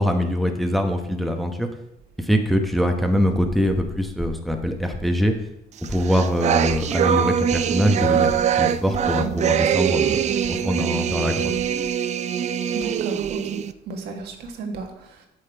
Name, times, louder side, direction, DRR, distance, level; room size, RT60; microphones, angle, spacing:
voice 1, 0.0-1.7 2.2-5.4 5.9-8.3 8.6-10.2 10.5-11.5, equal, ahead, 4 dB, 1.0 m, -23 dB
sound 1, 5.8-13.7, right 8 dB, 45° right, 0.4 m, -23 dB
voice 2, 12.7-15.3, right 4 dB, 75° right, 4 dB, 1.6 m, -34 dB
8.6 x 6.5 x 4.5 m, 0.84 s
cardioid pair, 110°, 17 cm